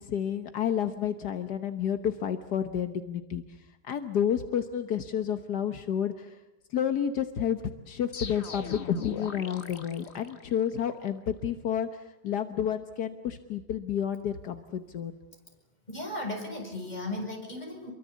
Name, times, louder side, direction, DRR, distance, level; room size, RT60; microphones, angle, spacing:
voice 1, 0.0-3.4 3.8-6.4 6.7-15.2, left 9 dB, 75° left, 8 dB, 1.7 m, -30 dB
sound 1, 8.1-10.9, left 4 dB, 40° left, 1.6 m, -38 dB
voice 2, 15.9-17.9, left 1 dB, 25° left, 1 dB, 6.9 m, -36 dB
28.0 x 23.5 x 8.4 m, 0.94 s
omnidirectional pair, 1.8 m